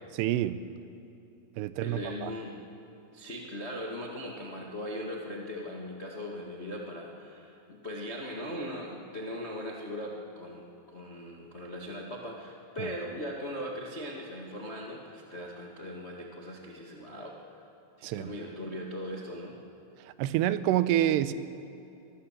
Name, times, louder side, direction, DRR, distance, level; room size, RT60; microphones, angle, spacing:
voice 1, 0.2-0.6 1.6-2.3 12.8-12.9 18.0-18.3 20.0-21.3, right 12 dB, 85° right, 13 dB, 2.9 m, -28 dB
voice 2, 1.8-2.6 3.1-17.6 18.0-19.6, equal, 45° left, -1 dB, 0.8 m, -39 dB
24.5 x 20.0 x 7.5 m, 2.7 s
omnidirectional pair, 4.8 m